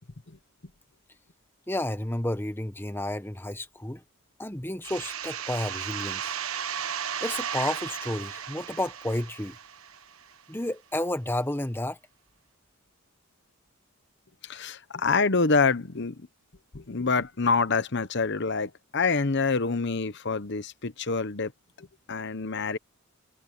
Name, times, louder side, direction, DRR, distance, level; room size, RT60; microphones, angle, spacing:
voice 1, 1.7-4.0 4.4-6.3 7.2-9.6 10.5-12.0, left 1 dB, 10° left, 1.2 m, -31 dB
sound 1, 4.8-10.3, right 8 dB, 75° right, 1.2 m, -35 dB
voice 2, 14.5-16.1 16.7-21.5 21.8-22.8, left 4 dB, 55° left, 1.0 m, -26 dB
head